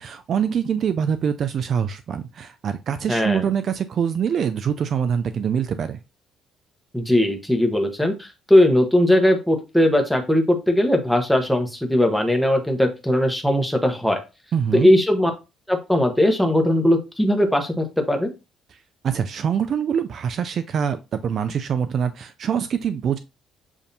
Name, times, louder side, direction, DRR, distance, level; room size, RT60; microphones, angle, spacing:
voice 1, 0.0-6.0 14.5-14.9 19.0-23.2, right 7 dB, 45° right, 10 dB, 0.3 m, -24 dB
voice 2, 3.1-3.5 6.9-14.2 14.7-15.3 15.7-18.3, left 1 dB, ahead, 4 dB, 0.9 m, -19 dB
7.0 x 2.7 x 2.7 m, 0.28 s
cardioid pair, 130°, 0 cm